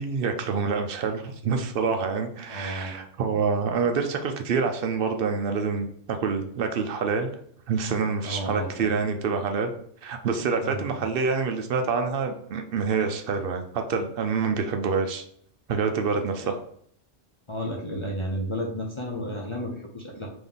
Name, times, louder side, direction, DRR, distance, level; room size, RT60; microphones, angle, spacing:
voice 1, 0.0-7.3 7.7-9.7 10.0-15.2 15.7-16.6, right 5 dB, 65° right, 6 dB, 0.7 m, -27 dB
voice 2, 2.5-3.0 8.2-8.9 10.6-11.1 16.4-16.5 17.5-20.3, equal, 35° left, -2 dB, 0.5 m, -32 dB
3.5 x 3.0 x 3.9 m, 0.64 s
omnidirectional pair, 1.1 m